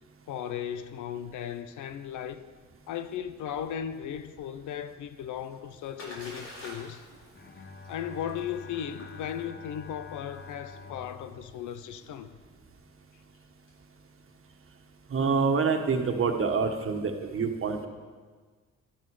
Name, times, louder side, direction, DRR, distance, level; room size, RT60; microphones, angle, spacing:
voice 1, 0.3-2.5 2.9-7.1 7.9-12.4, left 9 dB, 75° left, 0.8 m, -36 dB
Splash splatter, 5.5-15.1, left 1 dB, 55° left, 4.4 m, -51 dB
Bowed string instrument, 7.3-12.6, left 5 dB, 35° left, 1.0 m, -47 dB
voice 2, 15.1-17.9, right 5 dB, 45° right, 1.5 m, -26 dB
12.5 x 12.5 x 4.9 m
cardioid pair, 90°, 30 cm